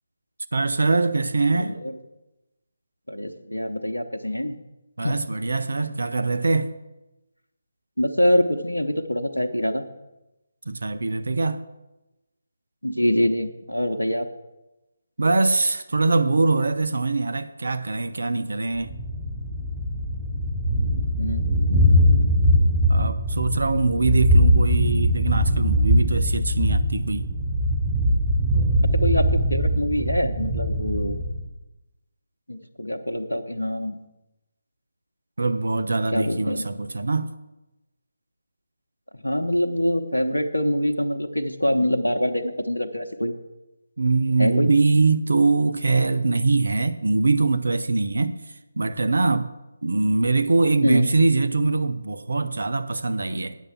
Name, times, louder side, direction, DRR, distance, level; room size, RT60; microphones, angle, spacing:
voice 1, 0.5-1.8 5.0-6.7 10.7-11.6 15.2-18.9 22.9-27.3 35.4-37.3 44.0-48.4 48.8-49.5 49.8-53.6, right 3 dB, 65° right, 0.6 m, -22 dB
voice 2, 1.5-1.9 3.1-4.5 5.0-5.2 8.0-9.8 12.8-14.3 21.2-21.6 28.9-31.2 32.5-34.0 36.1-36.7 39.2-43.3 44.4-44.7 50.8-51.1, equal, 85° left, 0.8 m, -24 dB
Thunder, 18.8-31.5, equal, ahead, 3.2 m, -21 dB
9.1 x 6.7 x 7.3 m
figure-of-eight pair, 150°, 0 cm